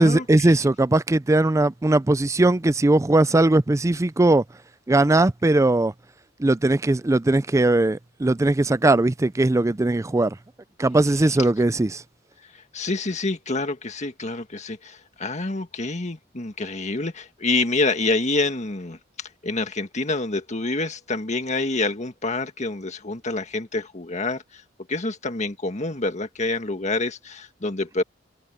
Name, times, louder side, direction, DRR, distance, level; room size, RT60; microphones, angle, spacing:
voice 1, 0.0-4.4 4.9-5.9 6.4-10.4 10.8-12.0, right 2 dB, 15° right, 0.4 m, -19 dB
voice 2, 12.7-24.6 24.9-28.0, left 3 dB, 40° left, 1.8 m, -27 dB
head